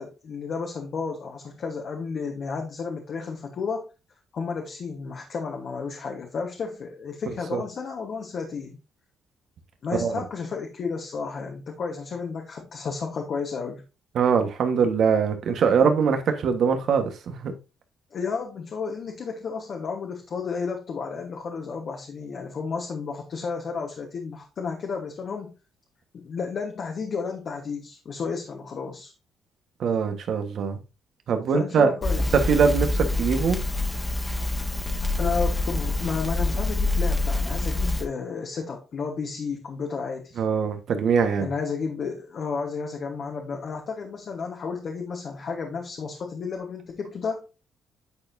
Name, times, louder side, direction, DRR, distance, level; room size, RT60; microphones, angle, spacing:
voice 1, 0.0-3.9 4.3-8.8 9.8-13.8 18.1-25.5 26.1-29.1 31.5-32.3 34.7-34.8 35.2-40.4 41.4-47.4, left 5 dB, 55° left, 1.2 m, -32 dB
voice 2, 14.1-17.5 29.8-30.8 31.3-31.9 32.3-33.6 40.4-41.5, right 6 dB, 65° right, 1.3 m, -22 dB
Crackle, 32.0-38.1, left 2 dB, 15° left, 1.4 m, -26 dB
9.5 x 4.3 x 2.6 m
cardioid pair, 90°, 0 cm